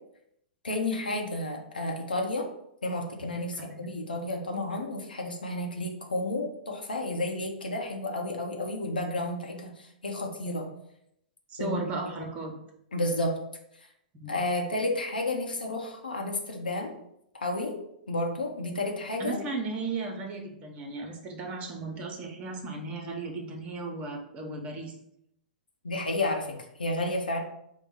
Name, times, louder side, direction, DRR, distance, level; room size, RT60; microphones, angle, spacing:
voice 1, 0.6-2.5 2.8-10.7 11.6-11.9 12.9-13.4 14.3-16.9 17.3-17.8 18.1-19.4 25.8-27.4, left 2 dB, 80° left, 1 dB, 0.9 m, -31 dB
voice 2, 11.5-12.5 14.2-14.4 19.2-24.9, right 3 dB, 30° right, 3 dB, 0.9 m, -35 dB
4.7 x 2.2 x 4.8 m, 0.77 s
figure-of-eight pair, 105°, 5 cm